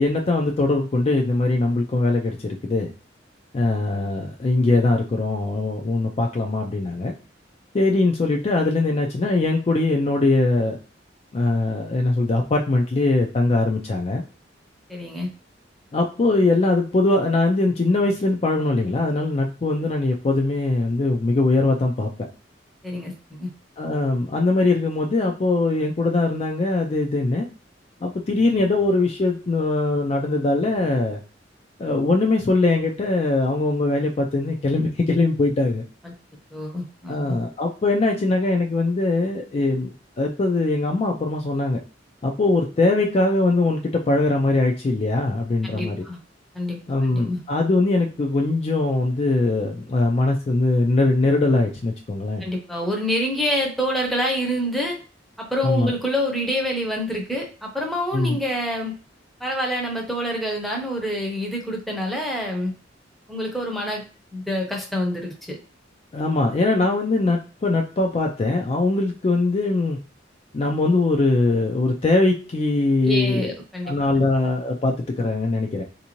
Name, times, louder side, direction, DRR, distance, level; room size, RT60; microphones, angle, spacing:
voice 1, 0.0-2.9 3.5-7.1 7.7-10.8 11.3-14.2 15.9-22.1 23.8-27.5 28.0-31.2 31.8-35.8 37.1-41.8 42.2-46.0 46.9-52.4 55.6-55.9 58.1-58.4 66.1-70.0 70.5-73.5 73.8-75.8, left 2 dB, 35° left, 2 dB, 0.4 m, -21 dB
voice 2, 14.9-15.3 22.8-23.5 36.0-36.1 36.5-37.4 45.7-46.2 46.5-47.4 52.4-55.0 55.4-59.0 59.4-62.7 63.3-64.1 64.3-65.6 73.1-74.3, equal, ahead, -1 dB, 0.7 m, -27 dB
3.5 x 2.6 x 2.9 m, 0.35 s
head